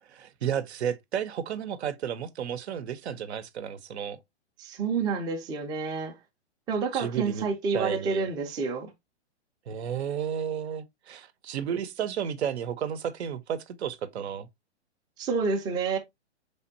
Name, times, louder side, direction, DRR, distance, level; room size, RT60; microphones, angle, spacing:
voice 1, 0.1-4.2 6.9-7.5 7.7-8.3 9.7-14.5, right 8 dB, 70° right, 0.7 m, -32 dB
voice 2, 4.6-6.2 6.7-8.9 15.2-16.0, right 4 dB, 10° right, 0.5 m, -29 dB
4.4 x 3.5 x 2.6 m
hypercardioid pair, 130°, 34 cm